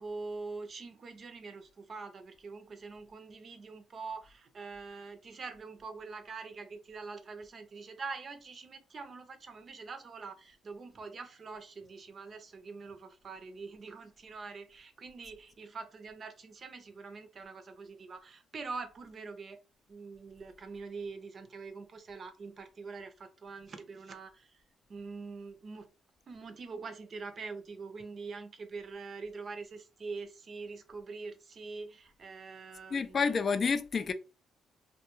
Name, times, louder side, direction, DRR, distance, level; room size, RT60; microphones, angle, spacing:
voice 1, 0.0-19.6 19.9-24.5 24.9-25.9 26.3-33.2, right 4 dB, 45° right, 0.5 m, -44 dB
voice 2, 32.9-34.1, left 5 dB, 45° left, 0.3 m, -29 dB
2.3 x 2.2 x 3.0 m
cardioid pair, 90°, 0 cm